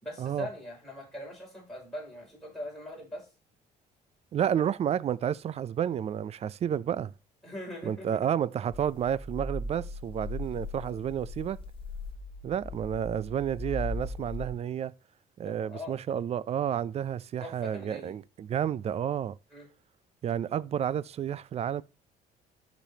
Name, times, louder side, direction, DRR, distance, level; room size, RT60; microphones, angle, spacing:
voice 1, 0.0-3.3 7.4-8.3 15.5-16.0 17.4-18.2 19.5-19.7, left 1 dB, ahead, 5.3 m, -41 dB
voice 2, 4.3-7.1 7.9-11.6 12.4-14.9 15.4-19.4 20.2-21.8, right 9 dB, 40° right, 0.4 m, -30 dB
sound 1, 8.7-14.5, left 2 dB, 30° left, 1.4 m, -39 dB
13.5 x 5.2 x 2.8 m
cardioid pair, 110°, 17 cm